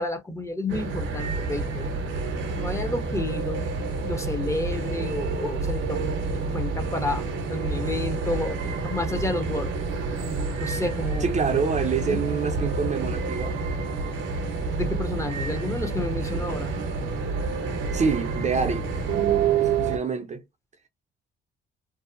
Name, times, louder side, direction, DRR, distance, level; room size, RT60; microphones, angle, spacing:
voice 1, 0.0-1.9 2.5-3.6 4.0-9.7 10.6-11.3 12.1-12.2 14.7-16.7, left 2 dB, 15° left, 0.7 m, -30 dB
sound 1, 0.7-20.0, right 4 dB, 75° right, 0.7 m, -28 dB
sound 2, 3.6-18.1, left 5 dB, 55° left, 1.4 m, -48 dB
voice 2, 11.2-13.6 17.9-18.9 19.6-20.4, right 5 dB, 35° right, 0.5 m, -26 dB
2.7 x 2.0 x 2.4 m
cardioid pair, 90°, 20 cm